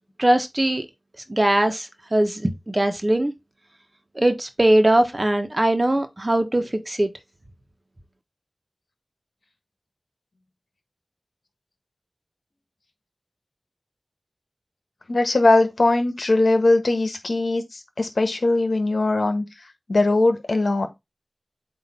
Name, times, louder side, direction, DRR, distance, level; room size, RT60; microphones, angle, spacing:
voice 1, 0.2-0.9 1.3-3.3 4.1-7.1, right 1 dB, 35° right, 1.2 m, -20 dB
voice 2, 15.1-19.4 19.9-20.9, left 2 dB, 75° left, 1.3 m, -20 dB
8.1 x 2.9 x 4.3 m
wide cardioid pair, 40°, 0 cm